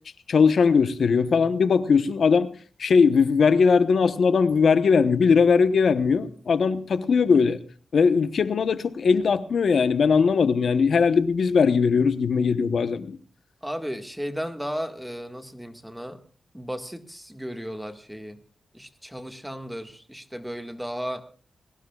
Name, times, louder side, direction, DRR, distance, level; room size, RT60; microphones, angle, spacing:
voice 1, 0.3-2.5 2.8-7.6 7.9-13.2, left 5 dB, 75° left, 11 dB, 1.1 m, -20 dB
voice 2, 13.6-16.2 16.5-18.4 18.7-21.2, equal, 5° right, 6 dB, 1.8 m, -34 dB
22.0 x 18.5 x 2.4 m, 0.41 s
cardioid pair, 60°, 0 cm